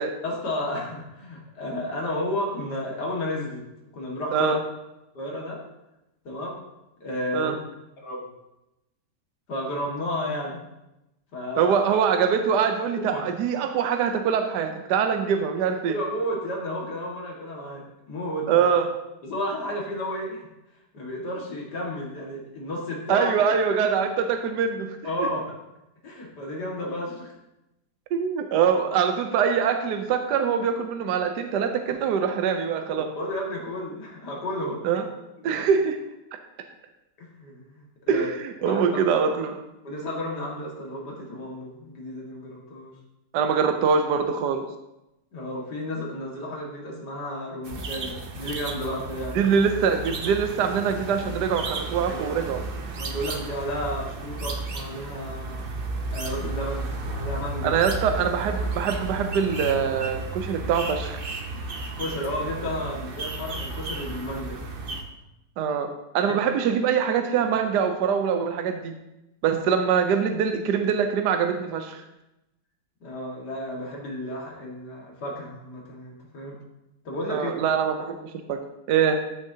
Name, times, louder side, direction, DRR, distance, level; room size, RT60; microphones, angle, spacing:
voice 1, 0.2-3.6 3.9-4.5 5.1-5.6 6.2-6.6 7.0-7.6 8.0-8.3 9.5-10.6 11.3-11.7 13.0-13.2 15.9-18.7 19.2-20.5 20.9-23.3 25.0-25.5 26.0-27.3 32.8-34.8 35.4-35.7 37.2-38.3 38.6-38.8 39.8-42.9 45.3-49.4 52.1-52.4 52.9-55.7 56.1-57.7 62.0-64.6 73.0-76.5 77.0-77.5, left 1 dB, 70° left, -2 dB, 2.5 m, -32 dB
voice 2, 4.3-4.6 7.3-7.6 11.6-15.9 18.5-18.9 23.1-25.3 28.1-33.1 34.8-35.1 35.4-36.0 38.1-39.6 43.3-44.7 49.3-52.6 57.6-61.2 65.6-69.0 69.4-72.0 77.3-78.2 78.5-78.6 78.9-79.2, right 7 dB, 75° right, 6 dB, 1.3 m, -23 dB
sound 1, 47.6-65.0, right 2 dB, 45° right, 0.8 m, -33 dB
14.0 x 6.3 x 2.8 m, 0.92 s
omnidirectional pair, 1.9 m